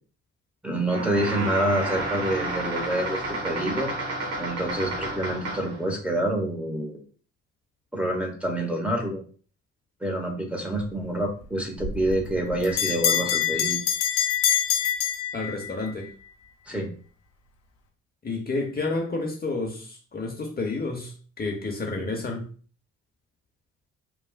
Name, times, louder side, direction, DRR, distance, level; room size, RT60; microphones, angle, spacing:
voice 1, 0.6-3.9 4.4-7.0 7.9-9.2 10.0-13.8 16.7-16.9, right 1 dB, 5° right, -2 dB, 1.1 m, -27 dB
sound 1, 0.8-5.8, right 2 dB, 55° right, 1.3 m, -31 dB
Bell, 11.8-15.9, left 9 dB, 70° left, 0.8 m, -25 dB
voice 2, 15.3-16.1 18.2-22.5, left 3 dB, 25° left, 0 dB, 0.8 m, -30 dB
3.4 x 2.3 x 2.4 m, 0.42 s
hypercardioid pair, 50°, 38 cm